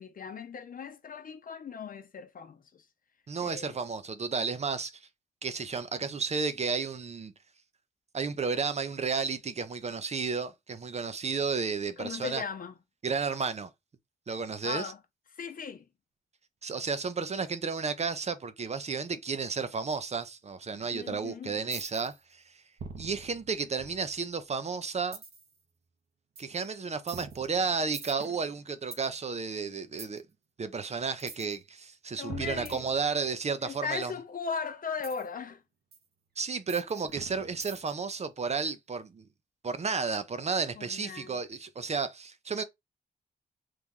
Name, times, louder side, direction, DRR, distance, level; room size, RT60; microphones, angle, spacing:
voice 1, 0.0-2.8 3.4-3.8 12.0-12.7 14.6-15.0 15.4-15.8 20.9-21.6 32.2-32.9 33.6-35.6 40.8-41.4, left 5 dB, 55° left, 0.7 m, -38 dB
voice 2, 3.3-5.0 5.4-7.3 8.1-12.4 13.0-13.7 14.3-14.9 16.6-22.4 23.0-25.2 26.4-30.2 30.6-34.1 36.4-39.3 39.6-42.6, right 5 dB, 40° right, 0.6 m, -32 dB
sound 1, 21.7-22.2 22.8-24.4 25.1-25.5 26.4-26.6 27.1-29.1 30.0-30.2 31.2-31.6 32.3-33.5 35.0-35.2 35.9-36.0 36.7-38.1, right 4 dB, 70° right, 1.0 m, -44 dB
3.1 x 2.5 x 3.7 m
cardioid pair, 60°, 17 cm